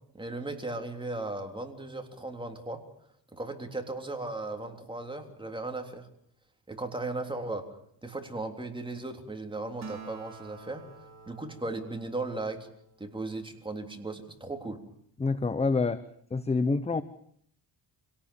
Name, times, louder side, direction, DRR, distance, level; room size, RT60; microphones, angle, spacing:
voice 1, 0.1-2.8 3.3-6.1 6.7-7.8 8.0-10.9 11.3-12.7 13.0-14.8, right 2 dB, 10° right, 4 dB, 3.5 m, -36 dB
Acoustic guitar, 9.8-13.5, right 4 dB, 40° right, 3.4 m, -49 dB
voice 2, 15.2-16.0 16.3-17.0, left 3 dB, 15° left, 14 dB, 0.9 m, -27 dB
26.0 x 18.0 x 7.2 m, 0.64 s
cardioid pair, 105°, 42 cm